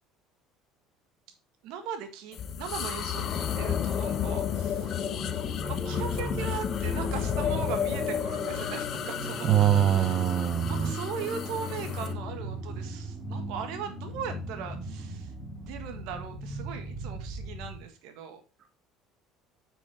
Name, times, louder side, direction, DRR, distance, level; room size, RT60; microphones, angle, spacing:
voice 1, 1.6-5.1 5.7-9.5 10.0-18.4, right 7 dB, 75° right, 7 dB, 1.7 m, -39 dB
sound 1, 2.3-12.1, left 9 dB, 50° left, 0.9 m, -32 dB
sound 2, 2.9-17.8, right 1 dB, 20° right, 4.8 m, -38 dB
voice 2, 9.5-10.9, right 10 dB, 45° right, 8 dB, 0.8 m, -23 dB
8.3 x 6.1 x 3.5 m, 0.34 s
supercardioid pair, 105°, 0 cm